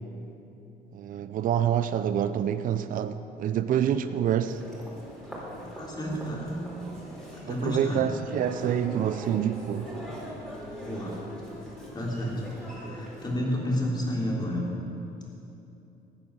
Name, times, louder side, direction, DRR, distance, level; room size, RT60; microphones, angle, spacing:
voice 1, 0.9-4.6 7.5-9.9 12.8-13.0, right 9 dB, 55° right, 11 dB, 0.6 m, -27 dB
Human voice, 4.5-13.3, equal, 5° left, 3.9 m, -41 dB
voice 2, 5.7-6.5 7.3-8.1 10.8-11.2 11.9-14.7, equal, 25° left, -3 dB, 3.2 m, -31 dB
14.5 x 9.5 x 6.3 m, 2.9 s
cardioid pair, 110°, 17 cm